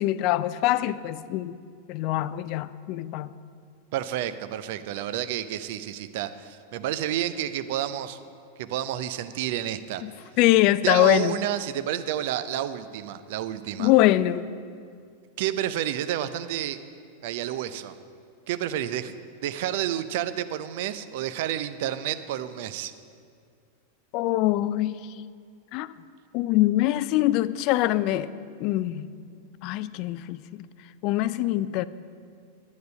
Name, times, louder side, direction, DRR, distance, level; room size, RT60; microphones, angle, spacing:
voice 1, 0.0-1.6 1.9-3.3 10.0-10.1 10.4-11.3 13.8-14.4 24.1-25.0 25.7-25.9 26.3-28.3 28.6-29.1 29.6-30.4 31.0-31.8, left 15 dB, 40° left, 0.3 m, -23 dB
voice 2, 3.9-8.2 8.6-10.0 10.8-13.9 15.4-16.8 17.2-17.9 18.5-19.1 19.4-22.9, right 11 dB, 50° right, 0.5 m, -30 dB
10.5 x 9.3 x 5.5 m
figure-of-eight pair, 90°, 0 cm